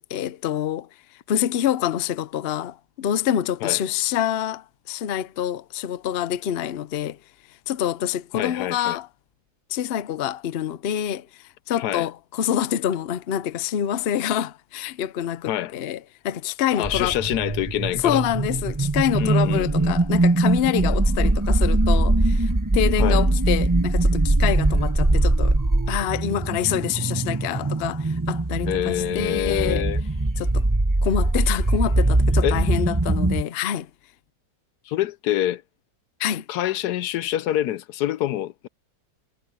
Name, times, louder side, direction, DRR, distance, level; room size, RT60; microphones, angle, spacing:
voice 1, 0.1-0.9 1.3-7.2 7.7-9.1 9.7-11.3 11.7-16.0 16.2-17.1 17.9-25.6 25.9-29.8 30.4-30.6 31.0-33.9 36.2-36.4, left 10 dB, 90° left, 0.5 m, -26 dB
voice 2, 8.3-9.0 11.8-12.1 15.5-15.7 16.7-18.2 19.2-19.9 23.0-23.2 27.6-27.9 28.6-30.0 32.4-32.7 34.9-35.6 36.5-38.7, left 12 dB, 70° left, 1.1 m, -26 dB
sound 1, 16.8-33.4, right 2 dB, 15° right, 0.7 m, -21 dB
omnidirectional pair, 2.0 m